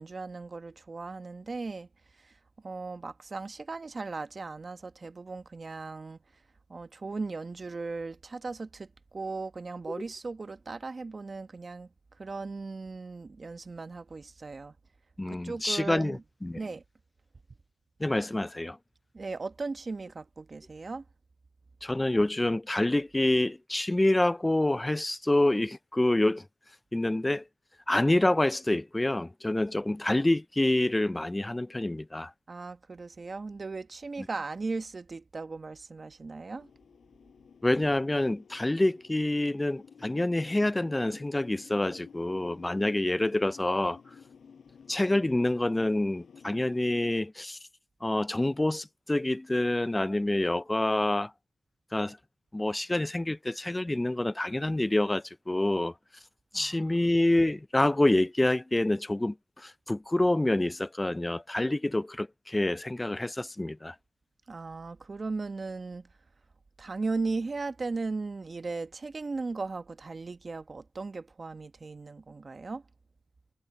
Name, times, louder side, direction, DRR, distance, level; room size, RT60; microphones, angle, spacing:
voice 1, 0.0-1.9 2.2-2.3 2.6-6.2 6.7-11.9 12.2-14.7 15.3-16.2 16.6-16.8 19.1-21.0 32.5-36.7 56.5-57.0 64.5-66.1 66.8-72.8, right 3 dB, 50° right, 1.4 m, -37 dB
voice 2, 15.2-16.6 18.0-18.8 21.8-26.4 26.9-27.4 27.9-32.3 37.6-44.0 44.9-47.6 48.0-51.3 51.9-52.2 52.5-55.9 56.5-63.9, left 1 dB, 20° left, 0.4 m, -27 dB
sound 1, 36.5-47.1, left 6 dB, 80° left, 6.4 m, -52 dB
cardioid pair, 50°, 0 cm